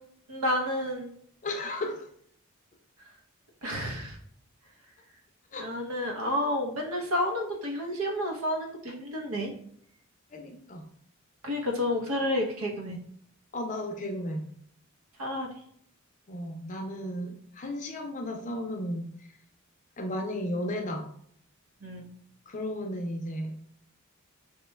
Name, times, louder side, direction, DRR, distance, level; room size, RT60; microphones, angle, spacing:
voice 1, 0.3-1.1 3.6-4.2 5.6-9.5 11.4-13.0 15.2-15.5 21.8-22.1, left 1 dB, 80° right, 2 dB, 0.7 m, -30 dB
voice 2, 1.4-2.1 5.5-5.7 10.3-10.9 13.5-14.5 16.3-19.1 20.0-21.1 22.5-23.6, left 1 dB, 35° left, 3 dB, 0.5 m, -34 dB
3.1 x 2.2 x 3.2 m, 0.64 s
head